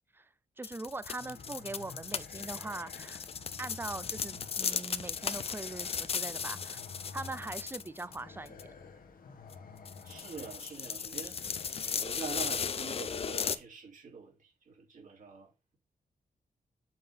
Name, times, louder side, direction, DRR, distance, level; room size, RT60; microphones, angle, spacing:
sound 1, 0.6-8.2 8.5-8.6 9.5-9.6 9.8-13.5, left 6 dB, 40° left, 0.5 m, -36 dB
voice 1, 0.6-3.2 3.6-6.8 7.1-8.6, right 2 dB, 15° right, 0.5 m, -41 dB
sound 2, 1.2-13.6, left 5 dB, 70° left, 1.5 m, -51 dB
voice 2, 10.0-11.4 11.8-15.8, right 5 dB, 60° right, 3.2 m, -45 dB
7.6 x 3.9 x 5.7 m
wide cardioid pair, 145°, 15 cm